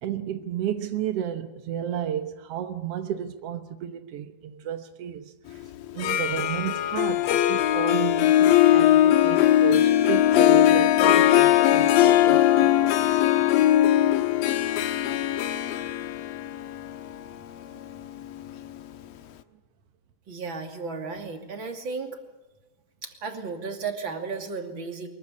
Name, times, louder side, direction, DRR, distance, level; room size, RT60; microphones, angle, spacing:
voice 1, 0.0-5.2 5.5-5.6 5.9-13.2, right 9 dB, 75° right, 1.4 m, -32 dB
Harp, 5.9-18.8, left 12 dB, 80° left, 2.9 m, -20 dB
voice 2, 20.3-22.2 23.0-25.1, right 4 dB, 35° right, 3.0 m, -34 dB
24.0 x 22.0 x 8.4 m
omnidirectional pair, 4.2 m